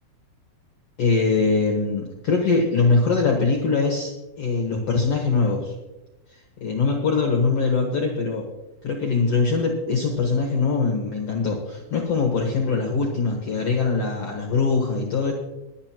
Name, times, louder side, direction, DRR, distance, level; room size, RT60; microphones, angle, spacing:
voice 1, 1.0-4.1 4.4-5.7 6.3-8.5 8.8-15.3, left 4 dB, 55° left, 1 dB, 2.2 m, -22 dB
22.5 x 9.4 x 3.0 m, 1.0 s
omnidirectional pair, 4.1 m